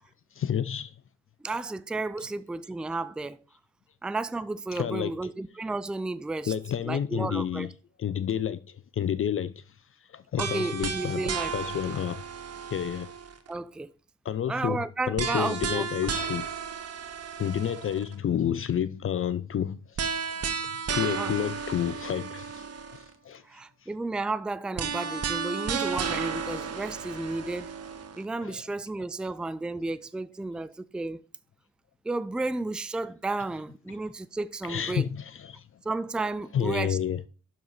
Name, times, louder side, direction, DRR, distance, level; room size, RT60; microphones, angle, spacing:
voice 1, 0.4-0.9 4.7-5.2 6.5-9.6 10.1-12.2 12.7-13.1 14.2-16.5 17.4-22.6 22.9-23.0 23.2-23.4 24.7-24.8 28.4-28.7 34.6-35.6 36.5-37.2, left 9 dB, 35° left, 0.6 m, -30 dB
voice 2, 1.4-3.4 4.0-6.5 6.8-7.7 10.4-11.5 13.5-13.9 14.5-15.9 21.1-21.3 23.4-27.7 28.2-31.2 32.0-35.1 35.8-37.0, right 3 dB, ahead, 0.4 m, -32 dB
sound 1, 10.4-13.5 15.2-18.1 20.0-23.1 24.8-28.2, right 6 dB, 40° right, 1.4 m, -33 dB
12.0 x 4.1 x 4.8 m
figure-of-eight pair, 45°, 37 cm